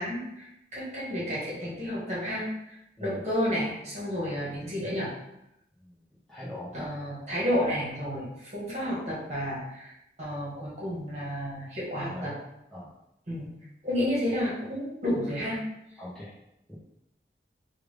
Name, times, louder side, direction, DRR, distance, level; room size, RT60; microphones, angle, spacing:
voice 1, 0.0-2.7 3.0-5.1 6.7-9.9 10.2-12.3 13.3-13.5 13.8-15.6, equal, 40° right, -7 dB, 1.2 m, -31 dB
voice 2, 6.3-6.9 12.0-12.3 12.7-12.9 16.0-16.3 16.7-16.8, left 1 dB, 5° left, -11 dB, 0.7 m, -40 dB
3.3 x 2.4 x 3.2 m, 0.85 s
head